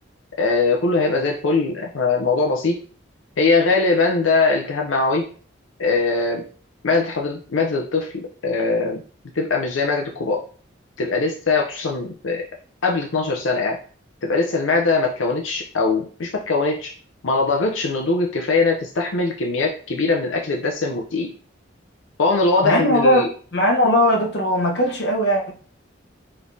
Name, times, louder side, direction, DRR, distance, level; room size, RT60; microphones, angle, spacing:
voice 1, 0.4-2.8 3.4-5.3 5.8-6.4 6.8-9.0 9.3-10.4 11.0-12.5 12.8-13.8 14.2-16.9 17.2-21.3 22.2-23.3, left 3 dB, 90° left, 2 dB, 0.6 m, -21 dB
voice 2, 22.6-25.5, equal, 60° left, 0 dB, 1.0 m, -19 dB
5.0 x 3.2 x 2.7 m, 0.42 s
head